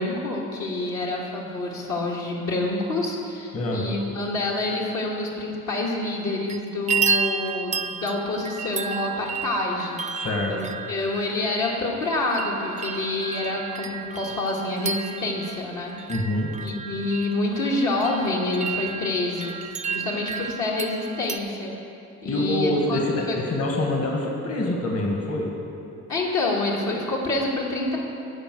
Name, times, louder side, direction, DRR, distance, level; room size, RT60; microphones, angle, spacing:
voice 1, 0.0-16.1 16.6-19.5 19.9-21.7 22.2-23.0 23.3-23.4 26.1-28.0, left 2 dB, 75° left, -3 dB, 1.8 m, -27 dB
sound 1, 6.2-6.6 6.9-21.4, right 5 dB, 25° right, 0.4 m, -32 dB
voice 2, 10.1-10.6 16.1-16.5 22.3-25.5, left 2 dB, 50° left, 0 dB, 1.7 m, -25 dB
13.5 x 4.7 x 7.8 m, 2.8 s
cardioid pair, 90°, 30 cm